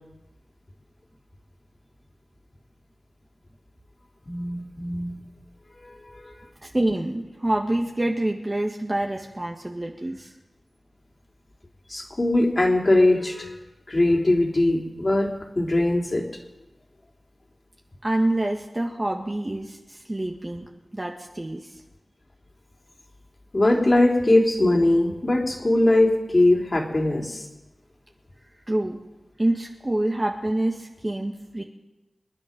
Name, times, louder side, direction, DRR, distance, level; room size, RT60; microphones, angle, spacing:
voice 1, 4.2-5.1 5.8-6.3 11.9-13.6 13.9-16.2 23.5-27.5, left 1 dB, 40° left, 1 dB, 3.4 m, -21 dB
voice 2, 6.6-10.3 18.0-20.6 20.9-21.7 28.7-29.0 29.4-31.6, right 1 dB, 25° right, 1 dB, 1.6 m, -26 dB
26.5 x 9.7 x 5.4 m, 1.0 s
cardioid pair, 50°, 0 cm